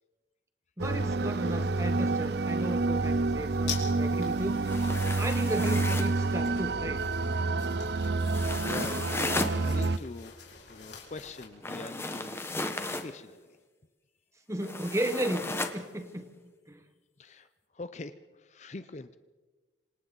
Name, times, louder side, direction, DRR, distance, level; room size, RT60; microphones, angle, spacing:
voice 1, 0.8-4.8 5.2-7.1 14.5-16.3 16.7-16.8, right 1 dB, 15° right, 8 dB, 1.4 m, -34 dB
sound 1, 0.8-10.0, right 3 dB, 65° right, 0.6 m, -28 dB
sound 2, 3.0-11.5, left 7 dB, 75° left, 4.5 m, -46 dB
sound 3, 4.6-6.2 8.2-9.6 11.6-13.1 14.6-15.8, left 2 dB, 15° left, 1.1 m, -34 dB
voice 2, 7.9-8.4 8.7-9.2 9.5-10.3 10.7-12.4 13.0-13.6 17.2-19.2, left 2 dB, 40° left, 12 dB, 0.6 m, -43 dB
27.0 x 26.0 x 4.0 m, 1.3 s
head